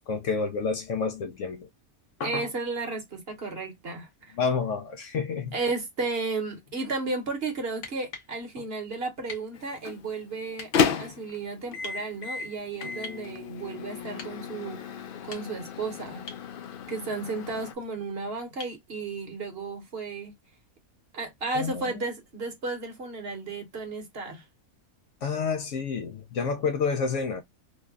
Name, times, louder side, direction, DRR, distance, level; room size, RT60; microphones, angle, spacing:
voice 1, 0.1-1.7 2.2-2.5 4.4-5.5 21.5-21.9 25.2-27.4, left 5 dB, 65° left, 0.8 m, -29 dB
voice 2, 2.2-4.4 5.5-10.7 11.0-14.9 15.2-16.2 16.9-20.3 21.1-24.4, right 3 dB, 50° right, 1.1 m, -33 dB
sound 1, 7.8-8.3 9.3-9.5 10.5-10.7 11.8-12.0 13.0-13.3 14.2-14.4 15.1-15.7 16.3-16.5 18.6-18.8 20.7-20.8, left 3 dB, 45° left, 1.0 m, -43 dB
Microwave oven, 9.5-17.7, left 6 dB, 85° left, 0.4 m, -33 dB
3.1 x 2.2 x 3.5 m
omnidirectional pair, 1.5 m